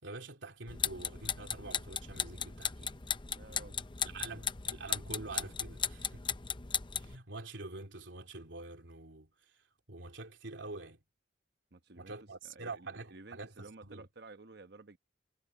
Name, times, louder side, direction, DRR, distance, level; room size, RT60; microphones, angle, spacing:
voice 1, 0.0-3.0 4.0-6.4 6.9-11.0 12.0-14.1, right 3 dB, 85° right, 2.9 m, -46 dB
sound 1, 0.7-7.2, left 7 dB, 25° left, 0.7 m, -37 dB
voice 2, 3.3-3.8 4.2-4.5 11.7-12.1 12.4-15.0, right 3 dB, 60° right, 1.1 m, -53 dB
head